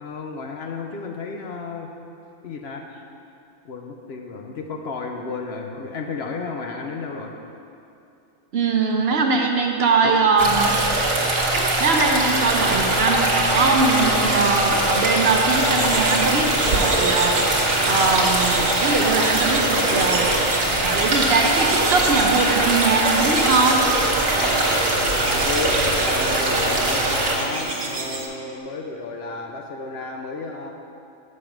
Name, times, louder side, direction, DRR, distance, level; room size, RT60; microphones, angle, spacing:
voice 1, 0.0-1.9 2.4-2.9 3.6-7.3 10.0-10.3 25.0-30.7, left 4 dB, 60° left, 2 dB, 0.8 m, -32 dB
voice 2, 8.5-10.7 11.8-20.4 20.8-23.8, right 4 dB, 60° right, 2 dB, 0.8 m, -21 dB
sound 1, 10.4-27.4, right 1 dB, 75° right, 1.8 m, -21 dB
sound 2, 15.2-28.3, right 3 dB, 30° right, 0.5 m, -30 dB
sound 3, 24.8-27.6, right 1 dB, 85° left, 2.0 m, -37 dB
7.1 x 6.4 x 5.9 m, 2.7 s
omnidirectional pair, 1.4 m